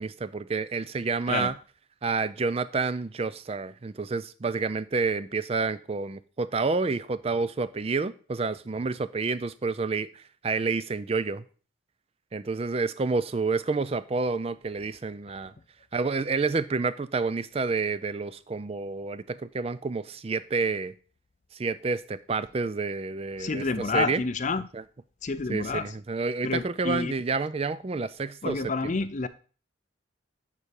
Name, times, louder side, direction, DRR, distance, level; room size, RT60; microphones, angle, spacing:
voice 1, 0.0-1.5 2.0-11.4 12.3-15.5 15.9-20.9 21.5-23.6 23.9-24.2 24.7-24.8 25.5-28.9, right 4 dB, 30° right, 0.4 m, -29 dB
voice 2, 23.4-24.7 25.2-25.9 26.4-27.1 28.4-29.3, left 4 dB, 40° left, 0.5 m, -29 dB
11.0 x 4.2 x 5.2 m
head